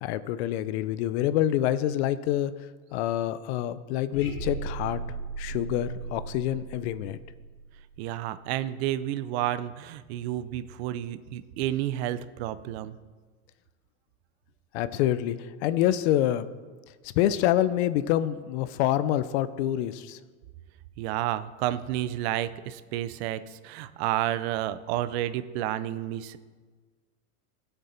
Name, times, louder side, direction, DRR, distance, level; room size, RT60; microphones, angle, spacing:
voice 1, 0.0-2.5 2.9-5.0 5.4-7.2 14.7-16.5 17.0-20.2, left 12 dB, 50° left, 14 dB, 0.6 m, -26 dB
sound 1, 4.1-8.2, right 3 dB, 90° left, 2.7 m, -37 dB
voice 2, 8.0-13.0 21.0-26.4, right 13 dB, 45° right, 14 dB, 0.5 m, -30 dB
16.0 x 6.9 x 4.3 m, 1.4 s
supercardioid pair, 140°, 44 cm